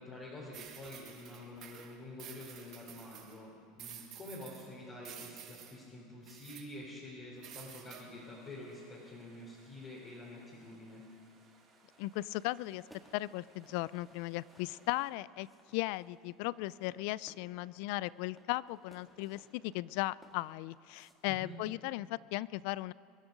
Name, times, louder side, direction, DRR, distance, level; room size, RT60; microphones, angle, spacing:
voice 1, 0.0-11.0 21.3-21.6, left 1 dB, 25° left, -5 dB, 3.2 m, -48 dB
sound 1, 0.5-3.4 3.8-4.7 5.0-5.7 6.3-6.7 7.4-8.0, right 10 dB, 45° right, 1.8 m, -51 dB
sound 2, 7.5-15.1, right 4 dB, 25° right, 3.2 m, -66 dB
sound 3, 11.9-21.1, right 1 dB, ahead, 1.8 m, -64 dB
voice 2, 12.0-12.8 13.1-15.5 15.7-22.9, left 19 dB, 65° left, 21 dB, 0.3 m, -37 dB
23.5 x 10.5 x 5.2 m, 2.5 s
supercardioid pair, 135°, 0 cm